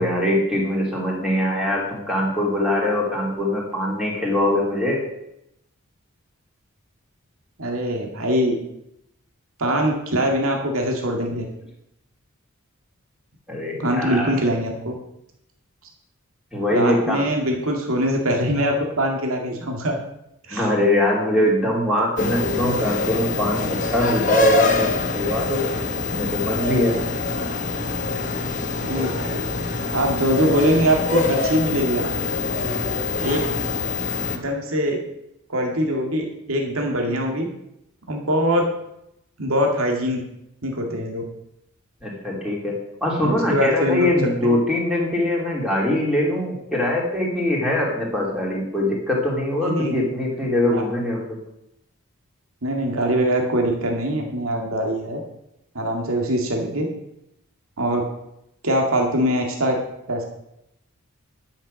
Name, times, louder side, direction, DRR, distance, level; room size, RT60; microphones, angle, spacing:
voice 1, 0.0-5.0 13.5-14.3 16.5-17.2 20.5-25.6 26.1-27.0 42.0-51.4, left 1 dB, 5° right, -3 dB, 3.1 m, -22 dB
voice 2, 7.6-8.5 9.6-11.4 13.8-14.9 16.7-19.9 20.5-20.7 28.8-29.4 29.9-32.2 33.2-33.4 34.3-35.0 35.5-37.5 38.1-38.6 39.4-40.2 40.6-41.2 43.2-44.1 44.4-44.6 49.6-50.0 50.7-50.8 52.6-55.2 55.7-56.9 57.8-58.0 58.6-59.8 60.1-60.2, equal, 75° right, 1 dB, 2.2 m, -22 dB
sound 1, 22.2-34.4, left 3 dB, 35° left, 1.1 m, -25 dB
11.5 x 7.4 x 6.4 m, 0.80 s
head